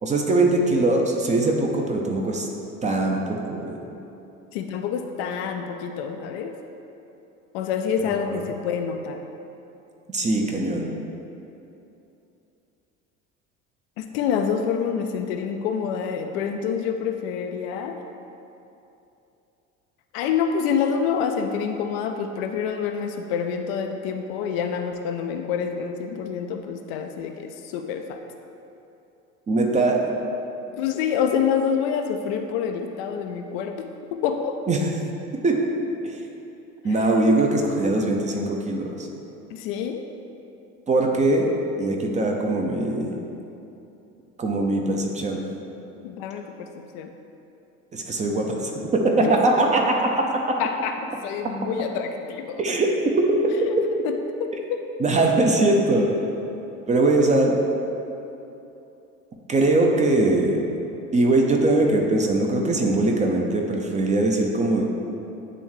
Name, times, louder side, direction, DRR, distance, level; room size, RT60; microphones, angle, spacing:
voice 1, 0.0-2.5 2.8-3.8 8.3-8.4 10.1-10.9 29.5-30.0 34.7-34.9 35.4-35.6 36.0-36.2 36.8-39.1 40.9-41.5 41.8-43.2 44.4-45.4 47.9-50.3 52.6-53.5 55.0-56.1 56.9-57.5 59.5-60.6 61.1-64.8, right 2 dB, 20° right, 1 dB, 0.5 m, -21 dB
voice 2, 4.5-6.5 7.5-9.2 14.0-18.0 20.1-28.2 30.7-34.6 36.9-37.0 39.5-40.0 46.0-47.1 49.2-49.3 50.6-52.6 54.0-54.8, left 7 dB, 50° left, 5 dB, 0.4 m, -27 dB
8.9 x 3.5 x 3.1 m, 2.9 s
figure-of-eight pair, 65°, 41 cm